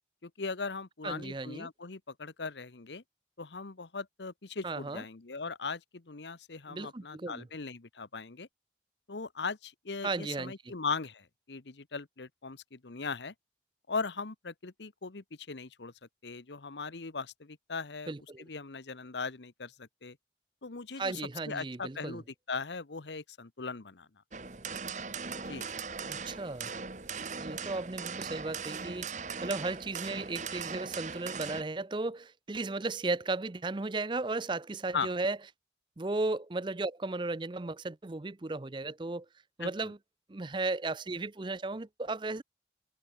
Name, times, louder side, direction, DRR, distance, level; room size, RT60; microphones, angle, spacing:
voice 1, 0.2-3.0 3.4-8.5 9.1-13.3 13.9-15.9 16.2-20.2 20.6-24.1 25.5-25.7 34.9-35.1 39.6-39.7, left 4 dB, 85° left, 1.1 m, -39 dB
voice 2, 1.0-1.7 4.6-5.0 6.7-7.5 10.0-10.7 18.1-18.4 21.0-22.2 26.1-26.7 27.4-35.4 36.0-39.3 39.6-40.0 40.3-42.4, right 3 dB, 25° right, 0.5 m, -35 dB
sound 1, 24.3-31.6, right 5 dB, 45° right, 1.4 m, -39 dB
head